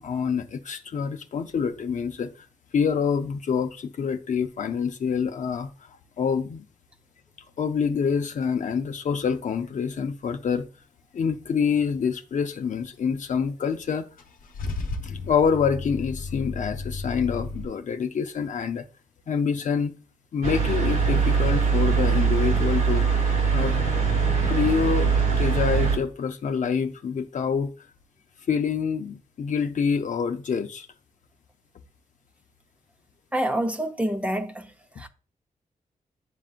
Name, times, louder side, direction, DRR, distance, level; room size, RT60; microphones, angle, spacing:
voice 1, 0.0-2.3 2.7-5.7 6.2-6.6 7.6-10.7 11.1-14.1 15.0-18.8 19.3-20.0 20.3-23.1 23.5-23.8 24.5-27.7 28.5-30.9, left 6 dB, 65° left, 0.6 m, -26 dB
Car / Engine starting / Idling, 14.2-17.6, left 3 dB, 85° left, 0.9 m, -33 dB
sound 1, 20.4-26.0, right 5 dB, 80° right, 2.0 m, -22 dB
voice 2, 33.3-34.7 35.0-35.1, right 1 dB, 10° right, 0.8 m, -27 dB
10.5 x 3.7 x 2.4 m
cardioid pair, 80°, 14 cm